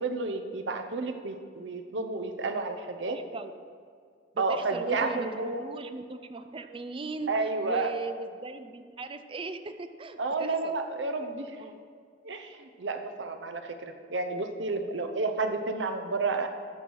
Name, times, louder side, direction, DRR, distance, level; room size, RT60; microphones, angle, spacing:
voice 1, 0.0-3.2 4.4-5.6 7.3-7.9 10.2-11.7 12.2-16.5, right 3 dB, 70° right, 6 dB, 0.8 m, -31 dB
voice 2, 3.1-3.5 4.3-7.3 7.6-10.8 11.6-11.8, right 3 dB, 30° right, 9 dB, 0.5 m, -38 dB
13.5 x 4.7 x 5.4 m, 2.1 s
head